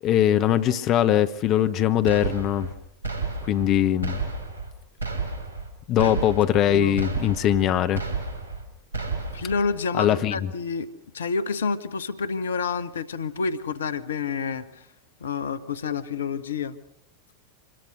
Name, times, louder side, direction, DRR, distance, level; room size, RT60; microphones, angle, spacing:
voice 1, 0.0-2.7 3.4-4.2 5.9-8.0 10.0-10.5, left 11 dB, 35° left, 1.0 m, -21 dB
sound 1, 2.1-2.7 3.0-3.7 4.0-4.7 5.0-5.7 6.0-6.7 7.0-7.7 8.0-8.6 8.9-9.6, right 4 dB, 85° left, 5.1 m, -31 dB
voice 2, 6.6-7.0 9.3-10.9 11.1-14.8 15.2-16.8, left 5 dB, 65° left, 1.1 m, -29 dB
26.0 x 21.5 x 6.4 m
figure-of-eight pair, 90°, 0 cm